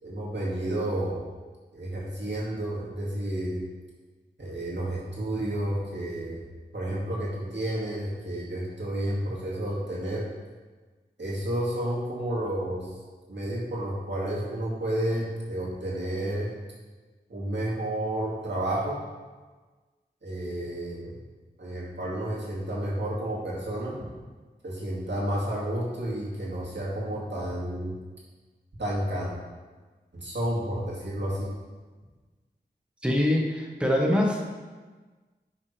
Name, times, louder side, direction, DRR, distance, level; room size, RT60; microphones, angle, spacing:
voice 1, 0.0-1.3 1.7-3.6 4.4-6.4 6.7-10.3 11.2-12.9 13.3-16.5 17.3-19.0 20.2-21.1 21.6-24.0 24.6-27.9 28.8-29.3 30.1-31.5, right 1 dB, 85° right, -6 dB, 2.2 m, -31 dB
voice 2, 33.0-34.4, left 1 dB, 5° right, -1 dB, 1.2 m, -24 dB
10.0 x 5.8 x 3.4 m, 1.3 s
wide cardioid pair, 55°, 18 cm